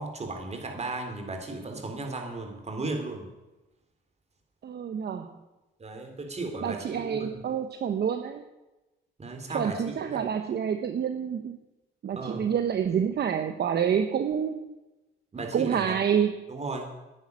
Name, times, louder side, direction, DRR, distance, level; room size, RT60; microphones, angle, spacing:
voice 1, 0.0-3.3 5.8-7.4 9.2-10.2 12.1-12.5 15.3-16.0 16.5-16.9, right 2 dB, 35° right, 4 dB, 3.9 m, -35 dB
voice 2, 4.6-5.3 6.6-8.4 9.5-11.6 12.0-14.6 15.5-16.3, right 8 dB, 55° right, 8 dB, 1.1 m, -28 dB
11.0 x 10.5 x 9.8 m, 1.1 s
cardioid pair, 90°, 20 cm